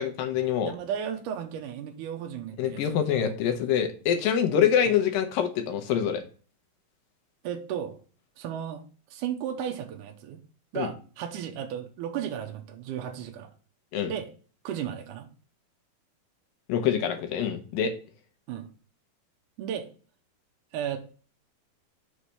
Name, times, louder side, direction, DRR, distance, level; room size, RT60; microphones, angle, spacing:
voice 1, 0.0-0.7 2.6-6.2 10.8-10.9 13.9-14.1 16.7-17.9, left 8 dB, 80° left, 6 dB, 2.5 m, -25 dB
voice 2, 0.6-3.3 4.9-5.0 7.4-8.0 8.4-8.8 9.1-10.4 10.7-13.5 14.1-14.3 14.6-15.3 18.5-18.7 19.6-19.9 20.7-21.0, right 9 dB, 75° right, 3 dB, 2.0 m, -34 dB
6.2 x 3.2 x 5.6 m, 0.38 s
omnidirectional pair, 4.2 m